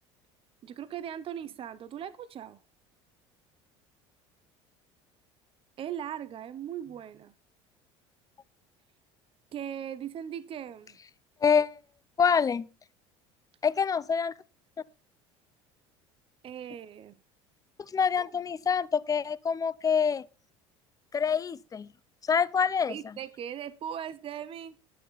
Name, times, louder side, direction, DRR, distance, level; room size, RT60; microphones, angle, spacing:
voice 1, 0.6-2.6 5.8-7.3 9.5-11.0 16.4-17.2 18.1-18.2 22.9-24.8, right 9 dB, 45° right, 1.0 m, -39 dB
voice 2, 11.4-11.8 12.2-12.7 13.6-14.3 17.8-20.2 21.1-21.9 22.3-23.0, left 6 dB, 25° left, 0.7 m, -26 dB
11.5 x 10.0 x 4.1 m
supercardioid pair, 90°, 13 cm